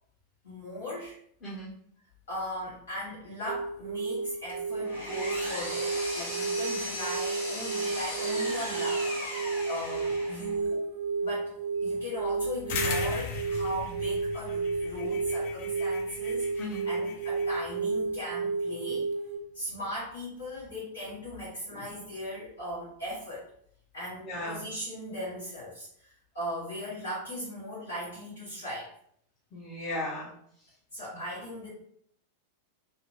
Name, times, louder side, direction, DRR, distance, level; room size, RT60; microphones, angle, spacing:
voice 1, 0.4-1.1 2.3-10.8 11.2-19.1 19.5-23.4 23.9-28.9 30.9-31.7, left 1 dB, 65° left, -9 dB, 1.1 m, -38 dB
voice 2, 1.4-1.7 16.6-16.8 24.2-24.6 29.5-30.3, left 1 dB, 25° left, -7 dB, 0.8 m, -36 dB
sound 1, 3.5-19.4, right 4 dB, 40° right, 0.5 m, -32 dB
Power tool, 4.5-10.6, left 1 dB, 80° left, 1.3 m, -37 dB
sound 2, 12.7-17.6, left 6 dB, 50° left, 0.4 m, -38 dB
2.7 x 2.1 x 2.9 m, 0.67 s
figure-of-eight pair, 90°, 0 cm